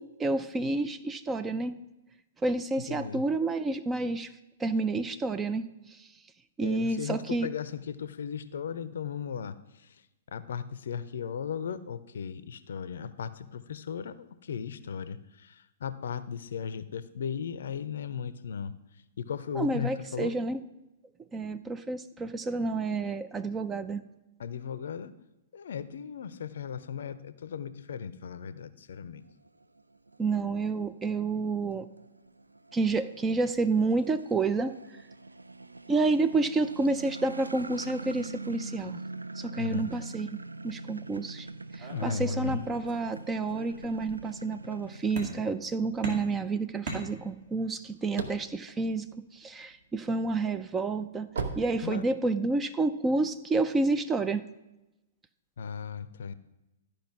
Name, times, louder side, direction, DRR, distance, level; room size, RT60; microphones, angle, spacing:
voice 1, 0.0-1.8 2.4-4.3 4.6-6.1 6.6-7.5 19.5-20.6 21.3-24.0 30.2-31.9 32.7-34.7 35.9-39.0 39.4-40.3 40.6-41.5 41.7-51.3 51.6-54.5, right 3 dB, 15° right, 11 dB, 0.4 m, -29 dB
voice 2, 2.9-3.2 6.6-9.5 10.3-14.1 14.4-18.7 19.2-20.3 24.4-25.1 25.5-29.2 39.6-39.9 41.9-42.6 51.8-52.0 55.6-56.3, left 7 dB, 60° left, 14 dB, 0.5 m, -36 dB
sound 1, 29.3-45.4, right 3 dB, 80° right, 0.3 m, -44 dB
sound 2, 41.8-43.1 43.5-44.2 45.2-45.7 46.0-47.6, right 2 dB, 45° right, 2.1 m, -40 dB
sound 3, 47.9-49.8 50.3-52.5, right 4 dB, 60° right, 0.9 m, -37 dB
12.5 x 5.2 x 5.8 m, 0.99 s
figure-of-eight pair, 110°, 0 cm